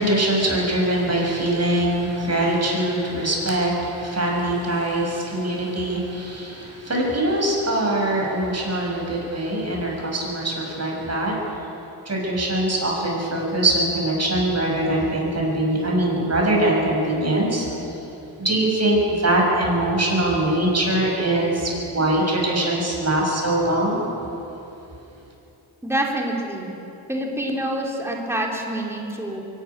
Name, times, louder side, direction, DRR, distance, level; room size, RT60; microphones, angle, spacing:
voice 1, 0.0-11.4 12.0-17.8 18.4-24.0, right 1 dB, 30° right, -1 dB, 6.5 m, -22 dB
voice 2, 25.8-26.8 27.1-29.4, right 1 dB, 5° right, -1 dB, 3.1 m, -26 dB
22.5 x 12.0 x 9.8 m, 2.9 s
cardioid pair, 85°, 48 cm